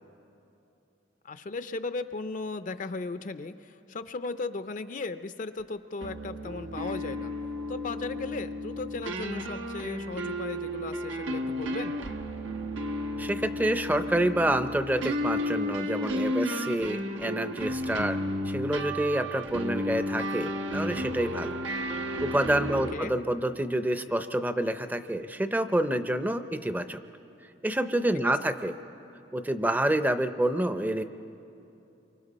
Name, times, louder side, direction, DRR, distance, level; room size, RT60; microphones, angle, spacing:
voice 1, 1.2-7.3 7.7-12.0 22.7-23.2, left 3 dB, 45° left, 11 dB, 0.5 m, -36 dB
sound 1, 6.0-22.9, equal, 90° right, 1.1 m, -33 dB
voice 2, 13.2-18.2 18.5-21.5 22.2-27.0 27.6-28.7 29.3-31.0, right 1 dB, 10° right, 10 dB, 0.5 m, -28 dB
28.0 x 24.0 x 4.1 m, 2.9 s
head